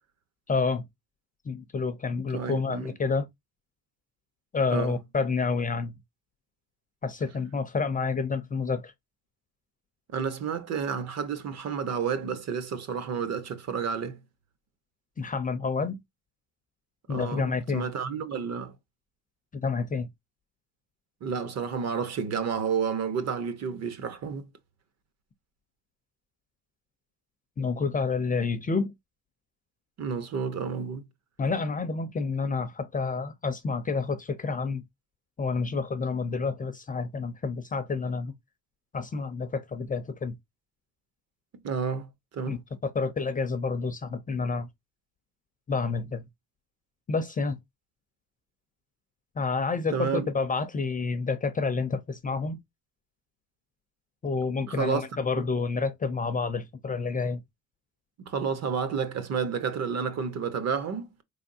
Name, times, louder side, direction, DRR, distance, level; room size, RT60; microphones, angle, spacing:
voice 1, 0.5-0.9 1.5-3.3 4.5-5.9 7.0-8.9 15.2-16.0 17.1-17.9 19.5-20.1 27.6-28.9 31.4-34.8 35.4-38.3 38.9-40.3 42.5-44.7 45.7-46.2 47.1-47.6 49.4-52.6 54.2-57.4, left 4 dB, 25° left, 0.4 m, -29 dB
voice 2, 2.3-2.9 4.7-5.0 10.1-14.2 17.1-18.8 21.2-24.4 30.0-31.0 41.5-42.6 49.9-50.3 54.6-55.1 55.4-55.5 58.2-61.1, right 6 dB, 50° right, 0.9 m, -30 dB
4.6 x 3.4 x 2.6 m
cardioid pair, 175°, 35 cm